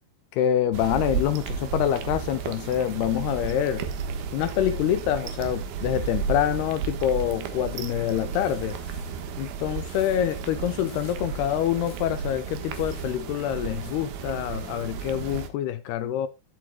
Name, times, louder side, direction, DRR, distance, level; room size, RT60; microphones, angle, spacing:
voice 1, 0.3-3.9 4.3-8.8 9.4-16.3, left 11 dB, 80° left, 2.5 m, -26 dB
sound 1, 0.7-15.5, right 6 dB, 70° right, 3.0 m, -33 dB
sound 2, 8.4-9.2 9.9-10.2 10.9-11.2 11.9-12.1 12.7-13.1 13.8-13.9, left 5 dB, 60° left, 4.2 m, -52 dB
16.5 x 7.7 x 2.2 m
omnidirectional pair, 5.1 m